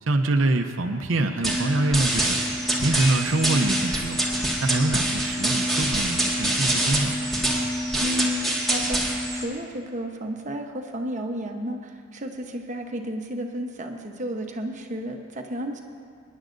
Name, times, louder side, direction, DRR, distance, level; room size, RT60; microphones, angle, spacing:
voice 1, 0.0-2.4 2.8-4.2 4.6-7.3, right 2 dB, 80° right, 5 dB, 0.7 m, -25 dB
sound 1, 1.4-9.4, right 1 dB, ahead, 1.8 m, -25 dB
voice 2, 8.0-15.8, equal, 40° right, 3 dB, 1.0 m, -32 dB
26.0 x 10.5 x 2.6 m, 2.2 s
head